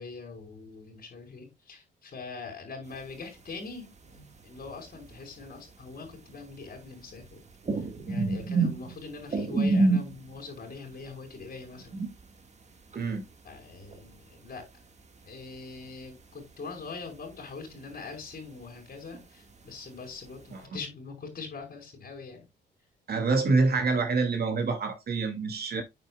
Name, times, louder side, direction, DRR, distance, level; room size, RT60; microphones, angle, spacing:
voice 1, 0.0-4.2 4.4-7.5 7.7-12.0 13.4-14.7 15.3-22.5, left 4 dB, 45° left, 5.4 m, -43 dB
sound 1, 2.9-3.7 4.0-14.6 15.0-16.5 16.8-20.6, right 3 dB, 35° right, 2.0 m, -31 dB
voice 2, 13.0-13.3 20.5-20.6 23.1-25.8, right 3 dB, 50° right, 2.6 m, -26 dB
9.0 x 7.9 x 2.4 m
cardioid pair, 90°, 20 cm